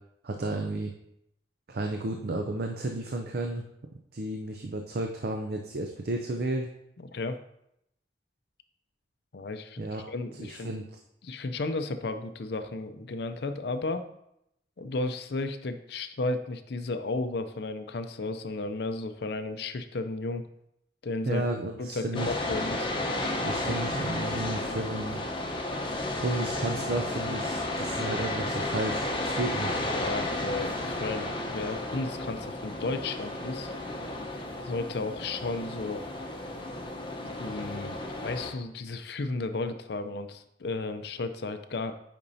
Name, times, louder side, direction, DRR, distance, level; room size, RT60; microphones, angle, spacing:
voice 1, 0.2-0.9 1.7-3.6 4.1-6.7 9.8-10.1 10.4-11.0 21.3-22.3 23.4-25.2 26.2-29.8, right 2 dB, 55° right, 4 dB, 0.5 m, -32 dB
voice 2, 7.0-7.4 9.3-10.7 11.2-14.1 14.8-20.5 21.0-21.4 21.8-22.9 29.9-33.7 34.6-36.1 37.2-41.9, left 3 dB, 60° left, 9 dB, 0.5 m, -34 dB
sound 1, 22.1-38.5, left 2 dB, 25° left, 0.8 m, -33 dB
8.5 x 5.2 x 2.7 m, 0.78 s
head